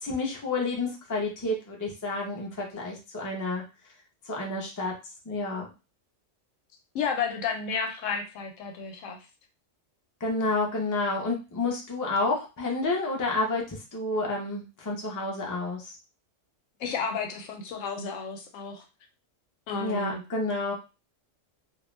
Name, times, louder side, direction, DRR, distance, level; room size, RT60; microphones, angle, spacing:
voice 1, 0.0-3.6 4.3-4.9 5.3-5.7 10.2-15.9 19.8-20.7, left 3 dB, 25° left, -1 dB, 0.4 m, -30 dB
voice 2, 6.9-9.2 16.8-18.8 19.7-20.2, left 5 dB, 85° left, 3 dB, 1.0 m, -32 dB
2.4 x 2.1 x 3.1 m, 0.30 s
omnidirectional pair, 1.3 m